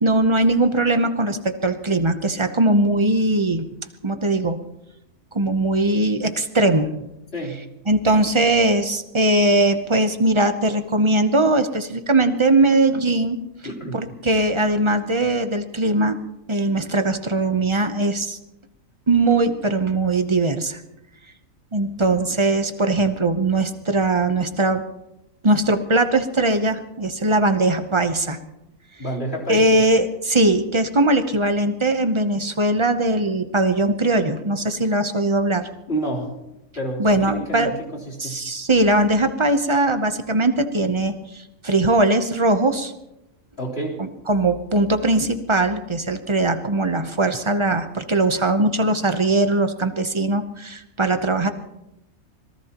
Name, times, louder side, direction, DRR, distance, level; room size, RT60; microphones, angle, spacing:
voice 1, 0.0-3.7 4.0-4.6 5.3-6.9 7.9-13.4 13.9-16.2 16.5-18.4 19.1-20.8 21.7-24.8 25.4-28.4 29.5-35.7 37.0-37.7 38.2-41.1 41.6-42.9 44.0-51.5, right 2 dB, 25° right, 8 dB, 0.7 m, -20 dB
voice 2, 13.6-14.0 29.0-29.8 35.9-36.3 36.8-37.8 38.1-38.4 43.6-44.0, right 1 dB, 45° left, -4 dB, 4.0 m, -29 dB
25.5 x 19.0 x 3.0 m, 0.91 s
omnidirectional pair, 1.5 m